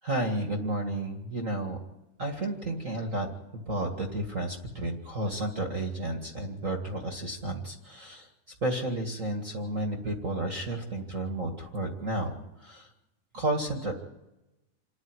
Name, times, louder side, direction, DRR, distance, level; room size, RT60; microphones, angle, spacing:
voice 1, 0.0-1.8 2.2-3.3 3.5-8.3 8.6-12.3 12.6-12.9 13.3-13.9, right 1 dB, 30° right, 3 dB, 1.8 m, -32 dB
28.0 x 9.5 x 9.7 m, 0.94 s
omnidirectional pair, 3.5 m